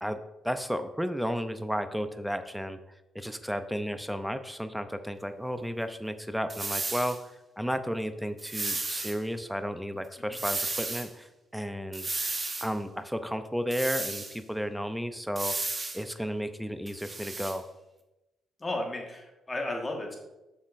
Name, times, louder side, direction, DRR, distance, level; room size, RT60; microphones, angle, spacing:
voice 1, 0.0-2.8 3.1-7.2 7.6-11.3 11.5-12.0 12.6-15.6 15.9-17.6, equal, ahead, 10 dB, 0.5 m, -33 dB
sound 1, 6.5-7.2 8.4-9.2 10.3-11.1 11.9-12.7 13.7-14.4 15.4-16.0 16.9-17.6, right 3 dB, 30° right, 0.9 m, -33 dB
voice 2, 18.6-20.2, left 2 dB, 20° left, 1 dB, 1.5 m, -34 dB
7.3 x 6.4 x 2.6 m, 0.99 s
cardioid pair, 90°, 0 cm